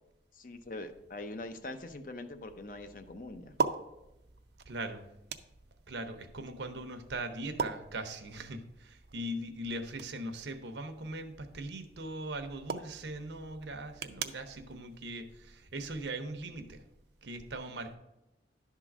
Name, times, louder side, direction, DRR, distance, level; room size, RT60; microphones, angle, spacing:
voice 1, 0.3-3.5, left 2 dB, 50° left, 8 dB, 0.6 m, -43 dB
sound 1, 0.9-16.1, right 5 dB, 60° right, 0.5 m, -43 dB
voice 2, 4.7-5.1 5.9-16.8 17.2-18.0, right 1 dB, 80° right, 8 dB, 0.9 m, -40 dB
11.0 x 3.8 x 6.0 m, 0.93 s
head